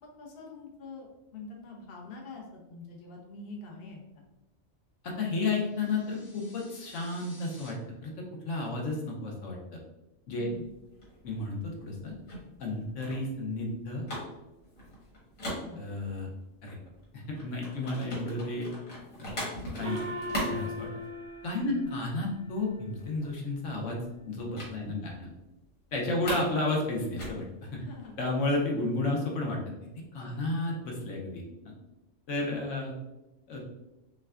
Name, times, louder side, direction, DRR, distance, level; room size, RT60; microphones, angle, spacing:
voice 1, 0.0-4.0 10.4-10.7 15.6-15.8 21.6-21.9 24.8-25.1 27.8-28.1 30.2-30.8, left 3 dB, 50° left, -1 dB, 0.9 m, -45 dB
voice 2, 5.0-7.8 8.0-9.8 10.3-10.5 11.2-12.1 12.6-14.0 15.8-16.3 16.6-16.8 17.1-18.7 19.2-19.4 19.7-20.2 20.4-20.9 21.4-25.3 25.9-27.8 28.2-29.6 30.1-31.7 32.3-32.9 33.5-33.6, left 2 dB, 70° left, -1 dB, 1.1 m, -32 dB
sound 1, 5.6-7.7, left 1 dB, 20° left, 1.0 m, -54 dB
sound 2, 10.5-16.3 16.7-21.6 21.8-22.1 22.4-22.5 22.8-23.5 24.6-24.8 25.1-25.2 25.6-26.6 26.9-28.6, equal, 85° left, 1.8 m, -40 dB
Gong, 19.8-22.7, equal, 70° right, 0.9 m, -39 dB
5.7 x 2.2 x 2.4 m, 0.98 s
omnidirectional pair, 1.4 m